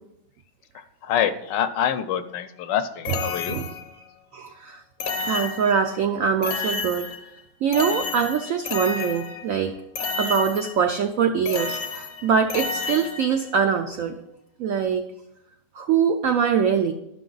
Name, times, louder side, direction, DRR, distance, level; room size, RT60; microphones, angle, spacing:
voice 1, 0.7-3.6, left 9 dB, 75° left, 11 dB, 1.2 m, -26 dB
sound 1, 3.0-4.0 5.0-6.0 6.4-7.4 7.7-9.6 10.0-10.9 11.5-13.5, left 4 dB, 55° left, 1.2 m, -31 dB
voice 2, 4.3-4.8 5.2-7.1 7.6-9.7 10.2-14.2 14.6-15.0 15.7-16.9, right 7 dB, 85° right, 6 dB, 0.7 m, -23 dB
11.5 x 6.0 x 3.9 m, 0.85 s
omnidirectional pair, 2.0 m